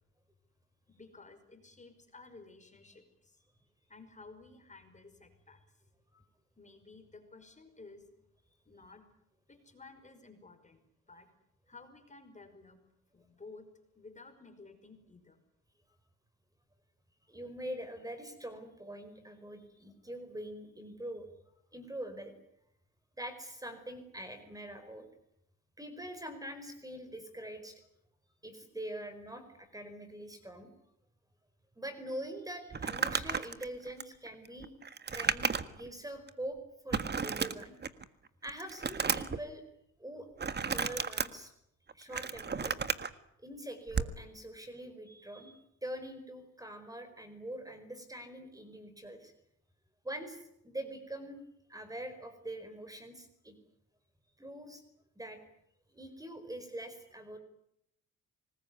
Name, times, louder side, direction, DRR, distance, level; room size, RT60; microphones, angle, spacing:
voice 1, 0.9-3.4 3.9-5.6 6.6-8.1 8.7-9.1 9.5-11.3 11.7-12.8 13.1-13.7 14.0-15.4, left 3 dB, 25° left, 7 dB, 5.4 m, -54 dB
voice 2, 17.3-21.3 21.7-22.3 23.2-25.1 25.8-27.8 28.4-30.7 31.8-34.7 35.1-37.7 38.4-39.6 40.0-40.3 40.7-41.5 41.9-42.8 43.4-49.3 50.0-51.4 51.7-53.5 54.4-54.8 55.1-55.5 55.9-57.4, right 1 dB, 10° right, 9 dB, 4.8 m, -44 dB
Crumpling crinkling, 32.7-35.9 36.3-36.4 36.9-38.0 38.4-39.4 40.4-41.3 41.9-43.1 43.9-44.2, right 5 dB, 35° right, 1.6 m, -33 dB
25.5 x 20.0 x 9.7 m, 0.76 s
cardioid pair, 90°, 30 cm